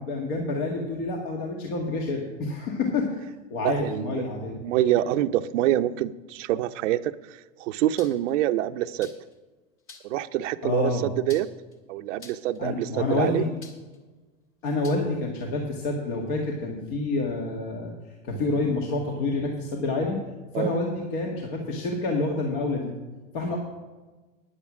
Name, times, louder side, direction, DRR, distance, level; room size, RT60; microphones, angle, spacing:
voice 1, 0.0-3.2 3.5-4.6 10.6-11.1 12.6-13.5 14.6-17.9 18.2-20.2 20.5-22.9 23.3-23.6, left 3 dB, 60° left, 0 dB, 2.0 m, -28 dB
voice 2, 3.6-4.2 4.6-9.1 10.0-11.0 11.3-11.5 11.9-13.4 20.5-20.7, right 13 dB, 70° right, 9 dB, 0.6 m, -26 dB
sound 1, 8.0-8.3 9.0-9.3 9.9-10.2 11.3-11.7 12.2-12.6 13.6-14.0 14.8-15.0, left 4 dB, 35° left, 1.9 m, -46 dB
10.0 x 8.7 x 6.2 m, 1.2 s
hypercardioid pair, 100°, 39 cm